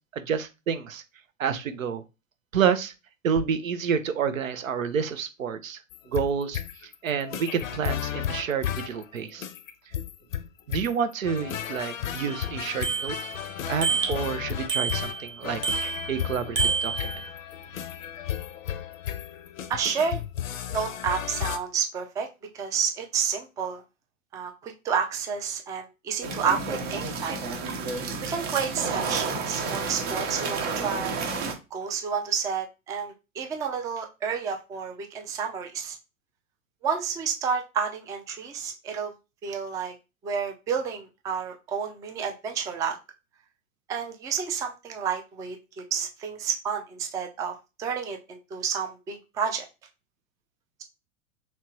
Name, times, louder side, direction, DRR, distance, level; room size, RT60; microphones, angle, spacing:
voice 1, 0.1-1.0 1.4-2.0 2.5-2.9 3.2-5.8 6.1-9.5 10.7-13.2 13.7-15.6 16.1-17.2, right 7 dB, 80° right, 11 dB, 0.6 m, -29 dB
sound 1, 5.9-21.6, left 10 dB, 75° left, 0.6 m, -34 dB
Bicycle bell, 12.3-12.4 12.8-13.4 13.8-14.3 14.7-15.3 15.6-16.2 16.6-17.3, right 5 dB, 30° right, 1.1 m, -28 dB
voice 2, 19.7-20.2 20.7-22.3 22.5-23.8 24.3-27.4 28.2-31.2 31.7-36.0 36.8-39.1 39.4-39.9 40.2-43.0 43.9-47.5 47.8-49.6, right 6 dB, 10° right, 3 dB, 0.3 m, -30 dB
sound 2, 26.2-31.5, right 4 dB, 50° right, 1.0 m, -31 dB
3.3 x 2.9 x 2.9 m, 0.27 s
figure-of-eight pair, 90°, 40 cm